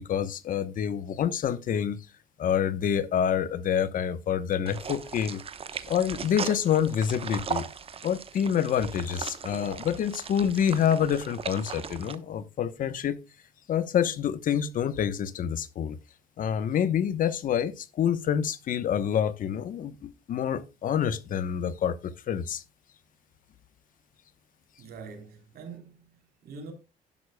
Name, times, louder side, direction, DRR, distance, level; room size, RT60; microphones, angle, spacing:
voice 1, 0.0-2.0 2.4-5.4 5.9-7.7 8.0-13.2 13.7-16.0 16.4-22.6, left 8 dB, 55° left, 1.0 m, -27 dB
sound 1, 4.7-12.2, right 6 dB, 35° right, 1.0 m, -38 dB
voice 2, 24.8-26.7, right 4 dB, 65° right, 3.4 m, -44 dB
11.5 x 11.0 x 2.2 m
cardioid pair, 110°, 17 cm